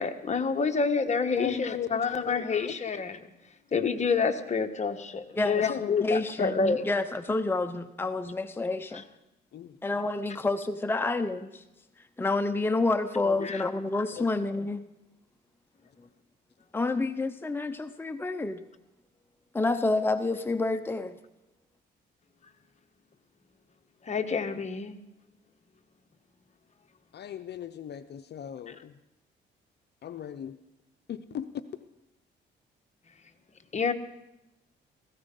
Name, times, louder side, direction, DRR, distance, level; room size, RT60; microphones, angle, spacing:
voice 1, 0.0-3.2 3.7-6.8 13.4-13.6 24.1-25.0 33.7-33.9, left 5 dB, 35° left, 7 dB, 1.3 m, -28 dB
voice 2, 1.3-2.8 5.7-6.1 9.5-9.8 13.2-13.5 14.2-14.3 27.1-29.0 30.0-30.6 31.1-31.5, left 9 dB, 55° left, 9 dB, 0.7 m, -37 dB
voice 3, 5.4-5.7 6.0-9.0 9.8-11.6 12.2-14.8 16.7-18.6 19.5-21.2, left 2 dB, 10° left, 9 dB, 0.7 m, -29 dB
17.0 x 15.5 x 5.4 m, 0.91 s
cardioid pair, 90°, 20 cm